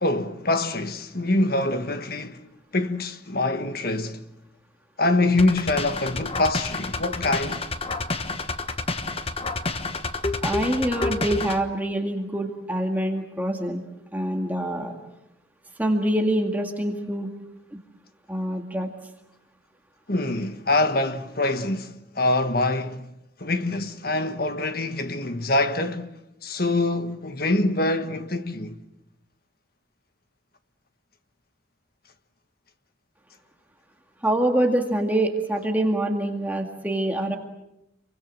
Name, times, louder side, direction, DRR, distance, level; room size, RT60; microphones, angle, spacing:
voice 1, 0.0-2.5 2.7-4.3 5.0-7.6 20.1-23.1 23.4-26.1 26.4-28.8, left 2 dB, 50° left, 1.4 m, -25 dB
sound 1, 5.4-11.6, left 3 dB, 30° left, 1.2 m, -29 dB
voice 2, 10.4-13.8 14.1-14.9 15.8-17.3 17.7-17.8 18.3-18.9 34.2-37.4, right 1 dB, 10° right, 2.0 m, -25 dB
28.0 x 23.5 x 7.6 m
head